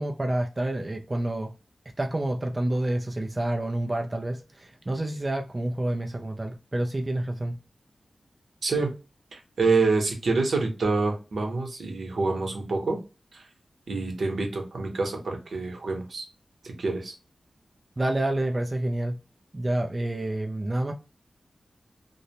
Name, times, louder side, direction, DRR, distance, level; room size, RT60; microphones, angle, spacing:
voice 1, 0.0-1.5 2.0-7.6 18.0-19.2 19.5-20.9, right 1 dB, 25° right, 0.3 m, -28 dB
voice 2, 8.6-8.9 9.3-13.0 13.3-13.5 13.9-16.3 16.6-17.2, right 3 dB, 75° right, 0.8 m, -27 dB
2.6 x 2.0 x 2.8 m
wide cardioid pair, 120°, 0 cm